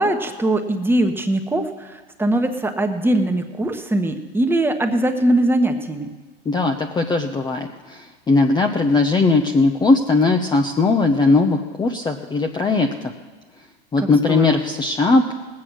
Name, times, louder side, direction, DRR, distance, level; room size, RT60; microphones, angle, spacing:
voice 1, 0.0-6.1 14.0-14.6, right 1 dB, 5° right, 4 dB, 1.3 m, -21 dB
voice 2, 6.5-13.1 13.9-15.3, left 3 dB, 15° left, 4 dB, 0.8 m, -19 dB
19.0 x 8.4 x 6.2 m, 1.3 s
hypercardioid pair, 105°, 32 cm